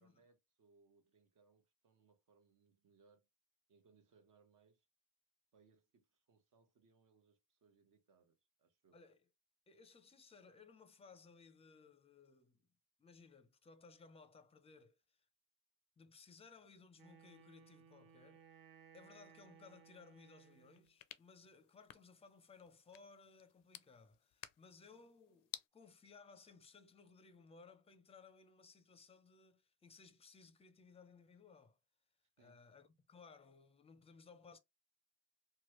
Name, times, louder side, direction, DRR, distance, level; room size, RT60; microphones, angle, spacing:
voice 1, 0.0-3.3 3.7-4.9 5.5-9.0 32.4-32.7, right 4 dB, 60° right, 1.1 m, -72 dB
voice 2, 9.7-12.6 13.0-15.3 16.0-18.4 18.9-31.8 32.4-34.6, left 4 dB, 15° left, 0.5 m, -61 dB
Wind instrument woodwind instrument, 16.9-20.9, right 7 dB, 85° right, 0.9 m, -63 dB
sound 1, 20.5-25.7, left 13 dB, 70° left, 0.5 m, -57 dB
3.1 x 2.3 x 3.0 m
cardioid pair, 120°, 35 cm